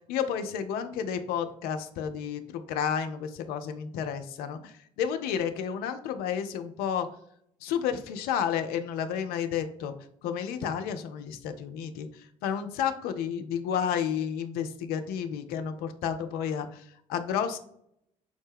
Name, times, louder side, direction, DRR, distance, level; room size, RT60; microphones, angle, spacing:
voice 1, 0.1-7.1 7.6-9.9 10.2-12.1 12.4-16.8 17.1-17.6, left 8 dB, 65° left, 8 dB, 0.5 m, -31 dB
4.9 x 2.1 x 3.3 m, 0.70 s
hypercardioid pair, 50°, 17 cm